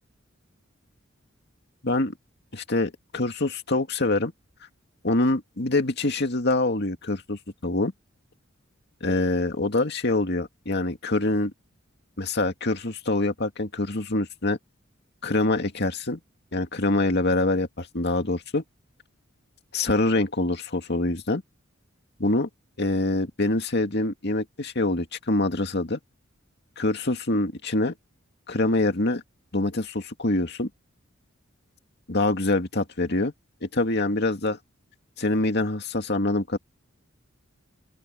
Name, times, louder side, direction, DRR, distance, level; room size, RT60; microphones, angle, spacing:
voice 1, 1.8-2.1 2.5-4.3 5.0-7.9 9.0-11.5 12.2-14.6 15.2-16.2 16.5-18.6 19.7-21.4 22.2-22.5 22.8-26.0 26.8-27.9 28.5-29.2 29.5-30.7 32.1-33.3 33.6-34.6 35.2-36.6, left 2 dB, 55° left, 2.3 m, -25 dB
open air
head